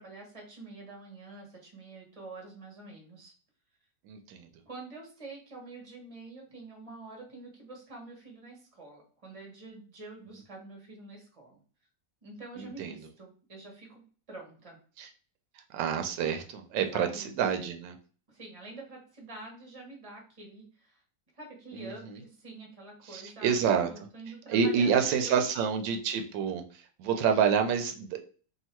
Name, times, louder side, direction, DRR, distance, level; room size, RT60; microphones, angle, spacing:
voice 1, 0.0-3.3 4.6-11.6 12.2-14.0 14.3-14.8 16.9-17.3 18.3-21.0 21.3-25.4, right 2 dB, 20° right, 0 dB, 1.2 m, -47 dB
voice 2, 4.1-4.5 12.6-13.0 15.0-15.1 15.7-18.0 21.7-22.2 23.1-23.9 24.5-26.6 27.0-28.2, right 7 dB, 85° right, 6 dB, 1.3 m, -28 dB
3.0 x 2.8 x 4.4 m, 0.40 s
omnidirectional pair, 2.0 m